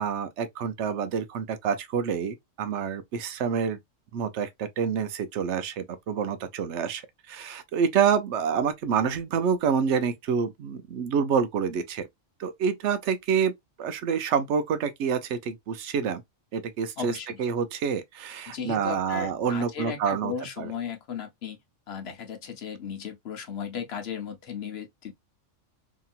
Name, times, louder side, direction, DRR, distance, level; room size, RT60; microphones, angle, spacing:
voice 1, 0.0-3.8 4.1-7.0 7.3-12.1 12.4-13.5 13.8-16.2 16.5-20.7, right 7 dB, 70° right, 0.9 m, -27 dB
voice 2, 17.0-17.4 18.5-21.6 21.9-25.1, left 7 dB, 60° left, 1.0 m, -36 dB
2.9 x 2.8 x 2.3 m
omnidirectional pair, 1.3 m